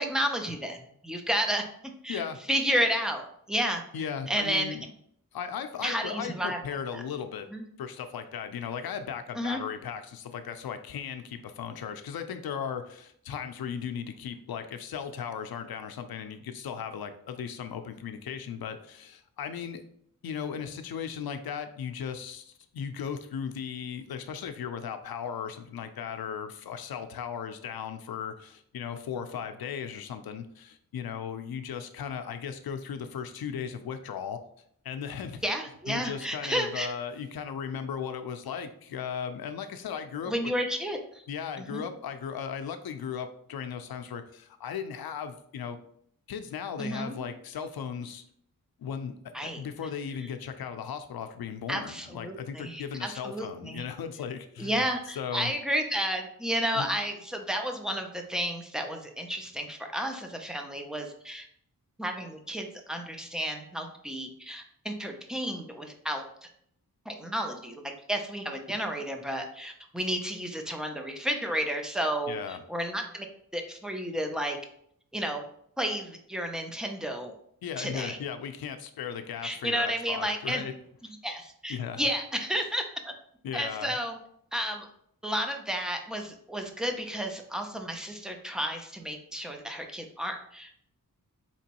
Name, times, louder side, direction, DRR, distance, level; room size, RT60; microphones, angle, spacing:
voice 1, 0.0-1.6 2.0-2.2 2.5-3.8 4.3-4.8 5.8-6.6 6.9-7.0 7.5-7.7 9.3-9.6 35.4-36.9 40.2-41.2 41.6-41.8 46.8-47.2 49.3-49.6 51.7-53.8 54.6-61.5 62.0-66.5 67.1-73.3 73.5-74.6 75.1-75.4 75.8-77.3 77.8-78.2 79.4-80.6 81.2-83.1 83.5-84.2 84.5-84.9 85.2-90.8, equal, ahead, 3 dB, 0.4 m, -32 dB
voice 2, 3.9-4.9 5.3-7.5 7.8-19.8 20.2-34.4 34.8-35.4 35.9-40.3 41.3-45.8 46.3-48.2 48.8-49.1 49.4-54.8 55.2-55.5 56.7-56.9 72.3-72.6 77.6-80.7 81.7-82.0 83.4-83.9, left 7 dB, 80° left, 8 dB, 0.5 m, -36 dB
4.4 x 3.0 x 2.9 m, 0.67 s
wide cardioid pair, 160°, 36 cm